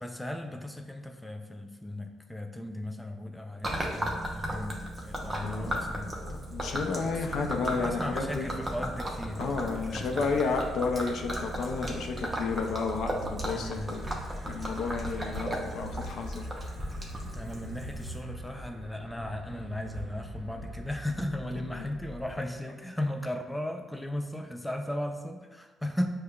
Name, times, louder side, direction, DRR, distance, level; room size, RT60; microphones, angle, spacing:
voice 1, 0.0-6.1 6.7-10.3 13.5-13.9 17.3-26.1, left 1 dB, 5° left, 5 dB, 0.3 m, -36 dB
Gurgling / Liquid, 3.6-18.2, right 1 dB, 25° right, 0.7 m, -36 dB
voice 2, 5.4-5.8 6.2-8.5 9.4-14.1 14.5-16.5 21.8-21.9, left 4 dB, 70° left, 3 dB, 0.5 m, -32 dB
sound 1, 12.1-22.5, equal, 45° right, 1.1 m, -44 dB
6.4 x 2.1 x 2.3 m, 1.3 s
cardioid pair, 90°, 0 cm